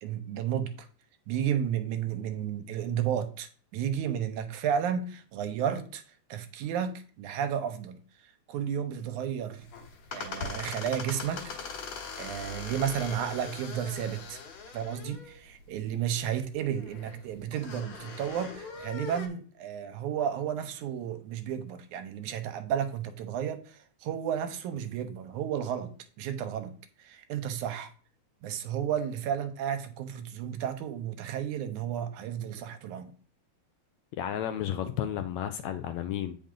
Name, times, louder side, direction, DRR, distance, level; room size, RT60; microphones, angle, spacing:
voice 1, 0.0-0.9 1.3-8.0 8.2-9.7 10.1-11.4 11.9-14.4 14.7-27.9 28.4-33.2, right 9 dB, 80° right, 2.2 m, -33 dB
sound 1, 9.6-19.3, left 5 dB, 65° left, 2.5 m, -41 dB
voice 2, 34.2-36.4, left 10 dB, 80° left, 1.7 m, -32 dB
8.6 x 5.4 x 3.8 m
omnidirectional pair, 3.5 m